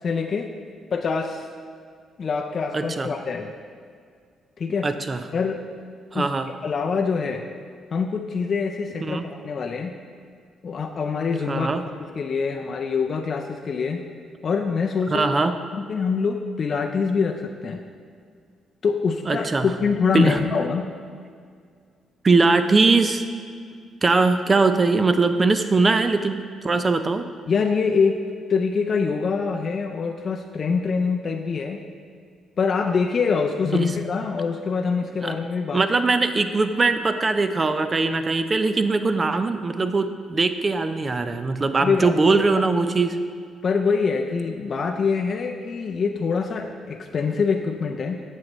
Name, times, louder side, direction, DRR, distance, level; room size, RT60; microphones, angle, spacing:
voice 1, 0.0-0.5 0.9-1.5 2.2-3.5 4.6-4.9 5.3-5.6 6.1-6.3 6.6-7.4 7.9-9.9 10.6-11.7 12.2-14.0 14.4-15.3 15.7-17.8 18.8-20.9 27.5-28.2 28.5-31.8 32.6-35.8 41.8-42.1 43.6-48.2, left 5 dB, 45° left, 2 dB, 0.4 m, -24 dB
voice 2, 2.7-3.1 4.8-5.2 6.1-6.5 9.0-9.2 11.5-11.8 15.1-15.6 19.3-19.7 20.1-20.4 22.2-23.2 24.0-27.2 33.7-33.9 35.2-35.3 35.7-43.2, right 3 dB, 30° right, 9 dB, 0.5 m, -21 dB
7.5 x 7.3 x 3.1 m, 2.1 s
cardioid pair, 90°, 0 cm